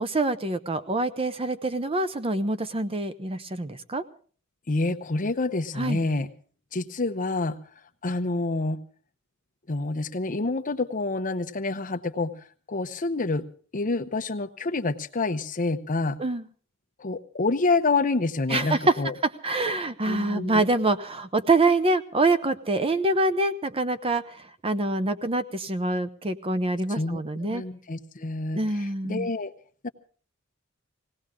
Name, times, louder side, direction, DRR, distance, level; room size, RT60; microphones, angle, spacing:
voice 1, 0.0-4.0 5.8-6.0 16.2-16.4 18.5-18.9 19.4-24.2 24.6-27.6 28.5-29.3, right 2 dB, 25° right, 11 dB, 0.7 m, -25 dB
voice 2, 4.7-6.3 6.7-7.6 8.0-8.8 9.7-12.3 12.7-13.4 13.7-16.2 17.0-19.1 20.1-20.6 26.9-27.2 27.5-29.5 29.8-29.9, left 3 dB, 40° left, 7 dB, 0.8 m, -27 dB
20.0 x 17.5 x 3.7 m, 0.43 s
head